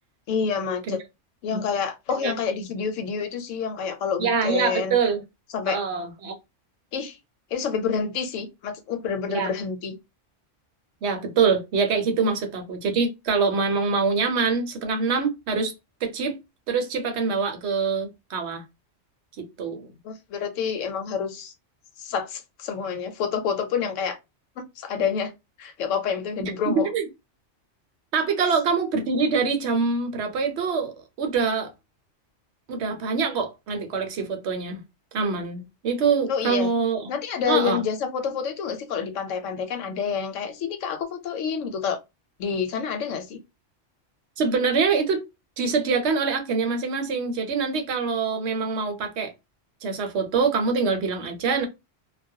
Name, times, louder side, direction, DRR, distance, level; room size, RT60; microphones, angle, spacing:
voice 1, 0.3-1.0 1.4-5.0 5.5-5.8 6.9-7.2 7.5-9.9 20.0-21.5 22.0-24.2 24.6-25.3 25.6-26.9 36.3-36.7 37.1-42.0 42.4-43.4, left 6 dB, 90° left, 1.0 m, -28 dB
voice 2, 4.2-5.2 5.7-6.3 9.3-9.5 11.0-15.7 16.0-16.4 16.7-18.6 19.4-19.9 26.4-27.0 28.1-31.7 32.7-34.8 35.1-37.0 37.5-37.8 44.4-45.2 45.6-49.3 49.8-51.7, right 5 dB, 65° right, 0.9 m, -24 dB
2.3 x 2.1 x 2.6 m
omnidirectional pair, 1.3 m